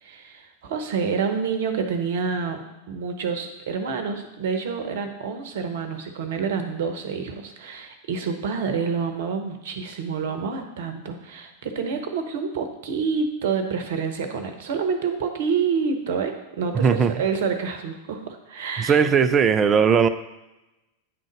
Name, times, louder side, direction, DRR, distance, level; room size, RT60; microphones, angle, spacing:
voice 1, 0.0-19.0, right 5 dB, 55° right, 7 dB, 0.9 m, -28 dB
voice 2, 16.7-17.2 18.8-20.1, right 6 dB, 25° right, 12 dB, 0.5 m, -18 dB
9.3 x 3.8 x 5.2 m, 0.99 s
figure-of-eight pair, 90°, 0 cm